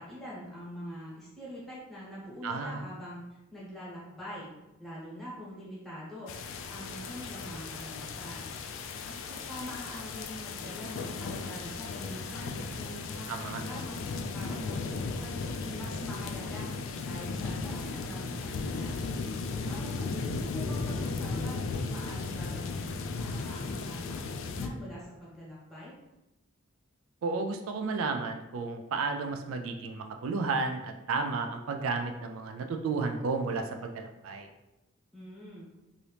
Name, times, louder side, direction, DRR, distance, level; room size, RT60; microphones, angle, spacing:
voice 1, 0.0-3.2 3.5-4.5 4.8-6.3 6.7-8.5 9.0-14.9 15.2-16.7 17.0-19.0 19.6-25.9 35.1-35.7, equal, ahead, -7 dB, 1.0 m, -44 dB
voice 2, 2.4-2.8 13.3-13.6 27.2-34.5, right 4 dB, 85° right, 5 dB, 0.3 m, -32 dB
sound 1, 6.3-24.7, left 4 dB, 70° left, 0.3 m, -36 dB
2.8 x 2.6 x 3.2 m, 0.97 s
head